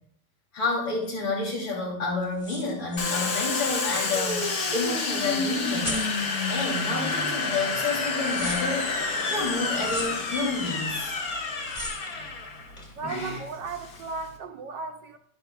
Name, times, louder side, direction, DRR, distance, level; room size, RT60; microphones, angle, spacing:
voice 1, 0.5-6.1 6.5-8.9 9.3-11.1, left 3 dB, 70° left, -3 dB, 3.7 m, -29 dB
sound 1, 1.0-1.1 2.2-4.1 4.3-4.4 4.7-5.3 5.6-6.2 7.1-7.3 7.6-8.7 9.8-10.4 11.6-12.4 12.8-13.0, left 1 dB, 15° left, 1.8 m, -39 dB
Domestic sounds home sounds, 3.0-14.4, left 3 dB, 50° left, 1.4 m, -29 dB
voice 2, 12.9-15.2, right 4 dB, 70° right, 6 dB, 1.3 m, -35 dB
11.5 x 10.5 x 2.3 m, 0.63 s
omnidirectional pair, 2.2 m